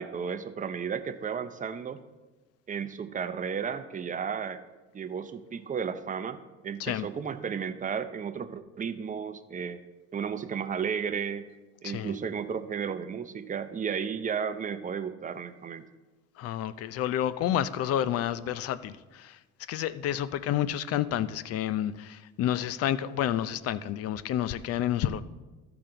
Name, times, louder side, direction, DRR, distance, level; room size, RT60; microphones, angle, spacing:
voice 1, 0.0-2.0 2.7-4.6 4.9-9.8 10.1-11.5 11.8-15.8, right 7 dB, 25° right, 0.7 m, -33 dB
voice 2, 11.8-12.2 16.4-19.4 19.7-25.2, left 11 dB, 55° left, 0.5 m, -30 dB
13.5 x 6.0 x 3.9 m
supercardioid pair, 100°, 30 cm